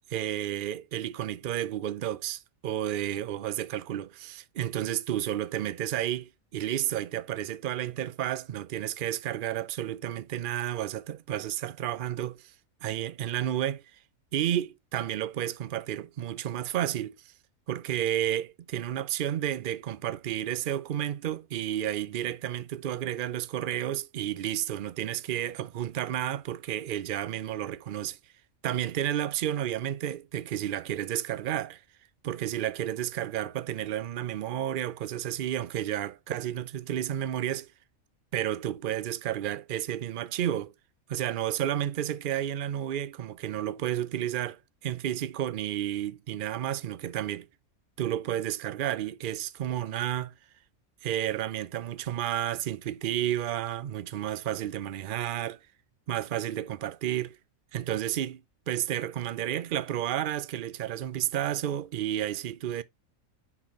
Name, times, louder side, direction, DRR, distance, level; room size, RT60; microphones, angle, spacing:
voice 1, 0.1-12.5 12.8-13.8 14.3-17.1 17.7-28.2 28.6-31.8 32.2-37.7 38.3-40.7 41.1-47.5 48.0-50.3 51.0-55.6 56.1-57.4 57.7-58.4 58.7-62.8, right 11 dB, 60° right, 0.5 m, -31 dB
9.7 x 4.1 x 3.0 m
omnidirectional pair, 1.5 m